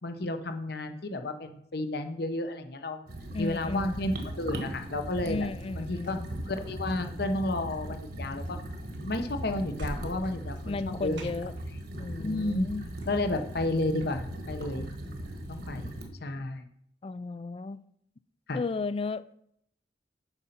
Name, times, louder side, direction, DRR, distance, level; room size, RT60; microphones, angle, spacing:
voice 1, 0.0-3.1 3.4-4.1 4.4-5.5 5.7-6.2 6.5-8.6 9.0-11.3 12.2-12.7 13.1-14.9 15.5-15.9 16.2-16.6 18.5-18.6, left 2 dB, 60° left, 0.9 m, -32 dB
sound 1, 3.1-16.1, right 1 dB, 60° right, 1.3 m, -39 dB
voice 2, 3.3-4.1 5.3-6.3 10.7-11.5 12.0-12.8 17.0-17.8 18.5-19.3, left 3 dB, 30° left, 0.3 m, -34 dB
sound 2, 4.9-14.9, right 1 dB, 80° right, 1.4 m, -48 dB
8.1 x 5.2 x 5.8 m
head